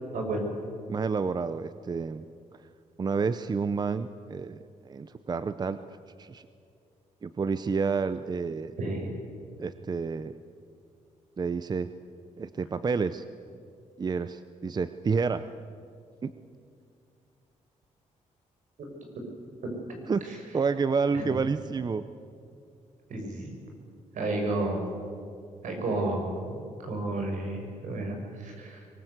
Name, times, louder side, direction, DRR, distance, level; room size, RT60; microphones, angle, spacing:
voice 1, 0.1-0.5 8.8-9.1 18.8-18.9 20.3-20.4 21.1-21.4 23.1-23.5 24.1-24.8 25.6-28.8, right 2 dB, 75° right, 2 dB, 6.1 m, -32 dB
voice 2, 0.9-2.2 3.0-5.8 6.2-6.5 7.2-8.7 9.6-10.3 11.4-11.9 12.4-13.2 14.0-15.4 16.2-16.3 20.1-20.2 20.5-22.0, right 5 dB, 30° right, 12 dB, 0.7 m, -29 dB
23.5 x 20.5 x 8.1 m, 2.4 s
cardioid pair, 105°, 13 cm